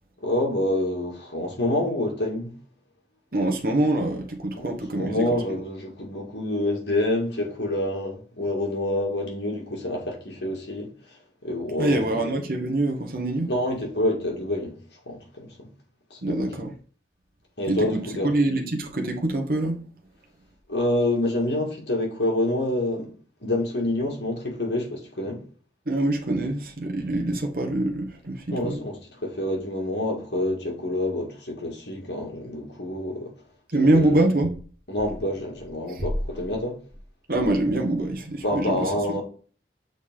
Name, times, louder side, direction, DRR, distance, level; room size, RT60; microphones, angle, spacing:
voice 1, 0.2-2.6 4.5-4.7 4.9-12.2 13.5-14.8 15.1-15.7 16.1-16.5 17.6-18.4 20.7-23.1 23.4-25.4 28.5-33.3 33.8-34.2 34.9-36.8 38.4-39.2, left 1 dB, 75° left, 2.1 m, -27 dB
voice 2, 3.3-5.2 11.8-13.5 16.2-16.7 17.7-19.8 25.9-28.8 33.7-34.6 37.3-39.2, right 1 dB, 50° right, 1.2 m, -24 dB
6.6 x 4.0 x 3.7 m
head